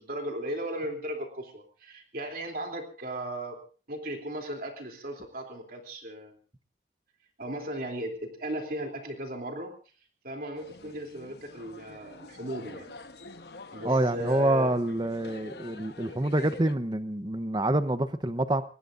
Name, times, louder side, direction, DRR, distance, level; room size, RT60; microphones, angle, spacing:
voice 1, 0.0-3.6 3.9-6.4 7.4-9.7 10.2-13.0 13.7-14.7, right 1 dB, 55° right, 3.3 m, -36 dB
sound 1, 10.6-16.8, left 3 dB, 70° left, 1.2 m, -46 dB
voice 2, 13.8-18.6, right 1 dB, 25° right, 0.9 m, -27 dB
26.0 x 20.0 x 2.6 m
head